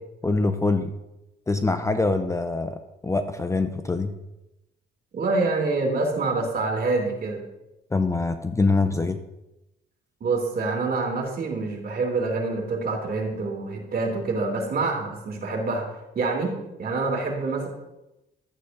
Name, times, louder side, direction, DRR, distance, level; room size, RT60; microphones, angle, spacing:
voice 1, 0.2-0.9 1.5-4.1 7.9-9.2, left 3 dB, 15° left, 8 dB, 0.5 m, -24 dB
voice 2, 5.1-7.4 10.2-15.8 16.1-17.7, right 3 dB, 50° right, 0 dB, 2.6 m, -26 dB
12.0 x 8.3 x 2.6 m, 0.95 s
cardioid pair, 90°, 20 cm